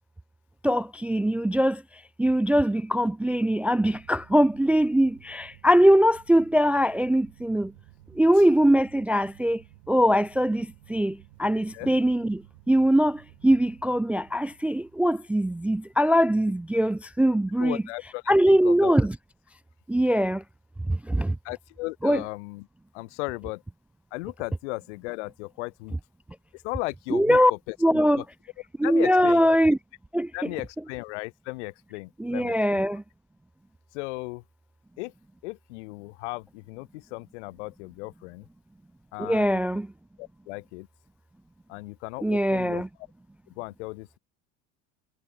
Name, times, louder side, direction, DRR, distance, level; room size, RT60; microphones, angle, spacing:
voice 1, 0.6-1.8 2.2-7.7 8.1-9.6 9.9-17.8 18.3-19.1 19.9-20.4 20.9-21.4 22.0-22.2 27.1-27.5 27.8-28.2 28.8-29.8 30.1-30.3 32.2-33.0 39.2-39.9 42.2-42.9, equal, 5° right, 0.3 m, -22 dB
sound 1, 3.9-17.1, right 20 dB, 85° right, 5.5 m, -55 dB
voice 2, 17.6-18.9 21.4-22.7 22.9-23.6 24.1-25.9 26.5-28.2 28.8-29.4 30.3-32.8 33.9-34.4 35.0-35.1 35.4-38.5 39.1-39.6 40.2-40.9 41.7-42.8 43.5-44.2, left 25 dB, 80° left, 2.4 m, -36 dB
supercardioid pair, 110°, 35 cm